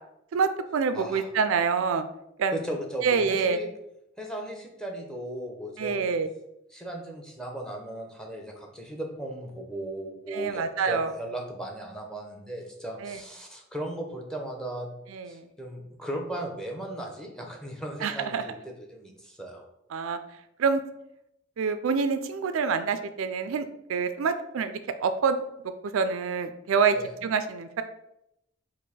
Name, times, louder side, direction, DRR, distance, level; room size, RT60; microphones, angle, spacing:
voice 1, 0.3-2.0 2.4-2.6 3.0-3.6 5.8-6.3 10.3-11.1 13.0-13.2 15.1-15.5 18.0-18.4 19.9-20.2 20.6-20.8 21.6-25.4 25.9-27.0 27.2-27.8, right 5 dB, 80° right, 10 dB, 0.4 m, -26 dB
voice 2, 0.9-1.3 2.5-3.7 4.2-6.1 6.7-14.9 15.3-19.6 26.9-27.1, right 1 dB, 5° left, 1 dB, 0.7 m, -37 dB
4.6 x 2.5 x 4.1 m, 0.80 s
head